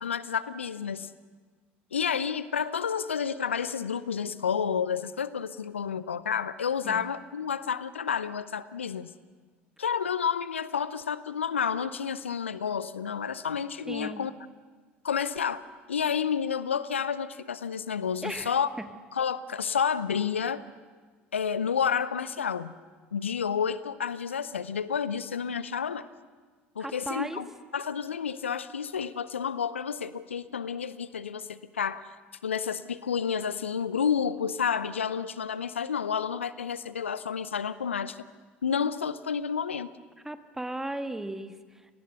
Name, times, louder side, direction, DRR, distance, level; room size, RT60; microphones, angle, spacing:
voice 1, 0.0-1.1 1.9-9.1 9.8-14.3 15.0-15.6 15.9-18.7 19.2-20.6 21.3-22.8 23.1-26.1 26.8-27.4 27.7-32.1 32.4-38.2 38.6-39.9, left 7 dB, 85° left, 16 dB, 0.6 m, -30 dB
voice 2, 13.9-14.3 18.2-18.9 26.8-27.4 40.2-41.9, right 1 dB, 5° right, 9 dB, 1.5 m, -36 dB
27.5 x 19.0 x 6.8 m, 1.5 s
figure-of-eight pair, 65°, 6 cm